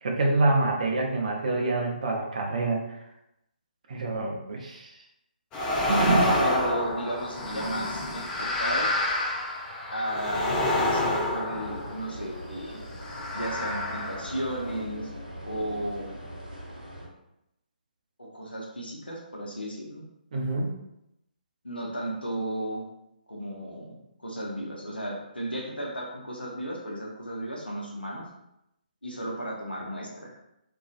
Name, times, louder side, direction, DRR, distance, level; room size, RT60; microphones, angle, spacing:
voice 1, 0.0-2.8 3.9-4.9 5.9-6.3 20.3-20.7, right 2 dB, 50° right, 0 dB, 0.5 m, -26 dB
sound 1, 5.5-12.3 12.9-14.8, left 1 dB, 15° left, 0.4 m, -28 dB
voice 2, 6.2-8.9 9.9-12.8 13.3-15.1 15.4-16.2 18.2-20.0 21.6-22.8 23.3-28.3 29.0-30.3, right 1 dB, 85° left, -3 dB, 0.6 m, -34 dB
sound 2, 11.5-17.1, equal, 80° right, 1.0 m, -41 dB
2.5 x 2.2 x 2.4 m, 0.84 s
figure-of-eight pair, 140°, 5 cm